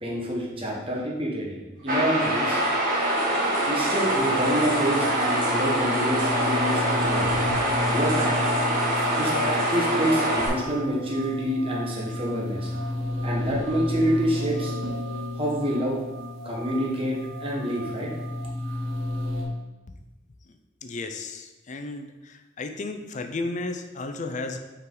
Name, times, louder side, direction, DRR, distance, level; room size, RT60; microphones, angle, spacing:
voice 1, 0.0-2.6 3.6-7.3 7.9-8.4 9.1-12.7 13.2-14.7 15.4-16.0 16.4-18.1, equal, 30° right, -3 dB, 1.4 m, -27 dB
sound 1, 1.9-10.5, right 1 dB, 45° right, 1.9 m, -24 dB
sound 2, 4.0-19.4, left 1 dB, 85° right, 1.2 m, -32 dB
voice 2, 20.8-22.1 22.6-24.6, left 3 dB, 40° left, 7 dB, 0.5 m, -33 dB
5.6 x 4.7 x 3.9 m, 1.1 s
head